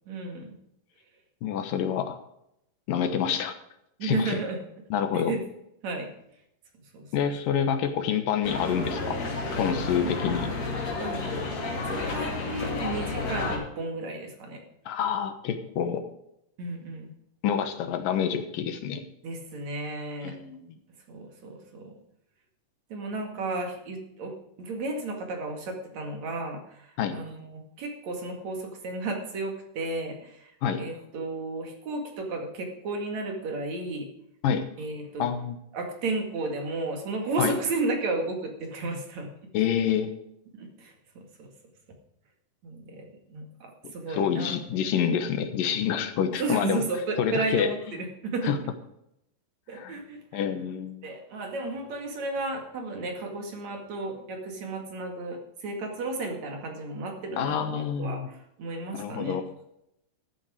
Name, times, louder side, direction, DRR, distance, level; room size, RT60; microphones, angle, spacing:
voice 1, 0.1-0.5 4.0-4.6 5.1-5.4 5.8-6.1 6.9-7.1 10.0-14.6 16.6-17.1 19.2-20.4 21.1-21.9 22.9-30.5 30.8-34.1 34.8-35.3 35.7-39.3 40.5-41.5 42.6-44.8 46.4-48.5 49.7-50.5 51.0-59.4, right 2 dB, 55° right, 3 dB, 3.2 m, -33 dB
voice 2, 1.4-2.2 2.9-3.5 4.0-4.4 4.9-5.3 7.1-9.2 9.6-10.5 14.9-16.1 17.4-19.0 20.2-20.8 27.0-27.2 30.6-30.8 34.4-34.6 35.2-35.6 37.4-37.5 39.5-40.1 43.8-46.8 47.2-47.7 48.4-48.6 49.7-50.0 50.3-51.0 57.4-58.3 58.9-59.5, left 8 dB, 80° left, 8 dB, 2.9 m, -27 dB
sound 1, 8.4-13.6, left 3 dB, 50° left, 3.6 m, -31 dB
13.5 x 8.9 x 4.9 m, 0.78 s
omnidirectional pair, 3.9 m